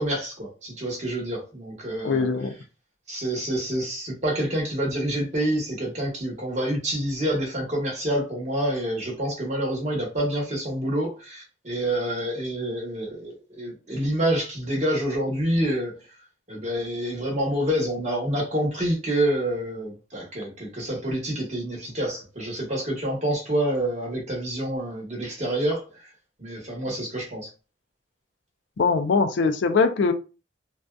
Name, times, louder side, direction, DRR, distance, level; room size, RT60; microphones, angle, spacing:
voice 1, 0.0-2.3 3.1-16.0 16.5-25.8 26.4-27.5, right 1 dB, 40° right, 1.0 m, -27 dB
voice 2, 2.0-2.5 28.8-30.1, left 4 dB, 75° left, 0.4 m, -21 dB
2.6 x 2.3 x 2.2 m
head